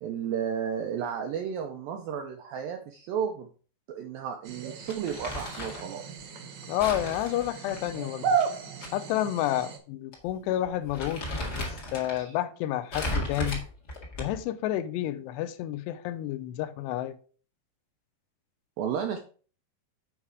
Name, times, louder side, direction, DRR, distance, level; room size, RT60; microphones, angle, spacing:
voice 1, 0.0-3.5 3.9-6.2 12.2-12.4 18.8-19.2, right 8 dB, 90° right, 2.1 m, -33 dB
sound 1, 4.4-9.8, right 6 dB, 70° right, 1.8 m, -34 dB
Crumpling crinkling, 4.9-5.9 6.8-8.9 9.2-9.3 10.1-10.3 10.6-12.2 12.9-14.5, left 1 dB, 60° left, 1.0 m, -35 dB
voice 2, 6.7-8.4 8.9-11.2 11.5-13.6 14.2-17.2, left 13 dB, 85° left, 2.7 m, -30 dB
8.3 x 4.9 x 4.7 m
omnidirectional pair, 5.0 m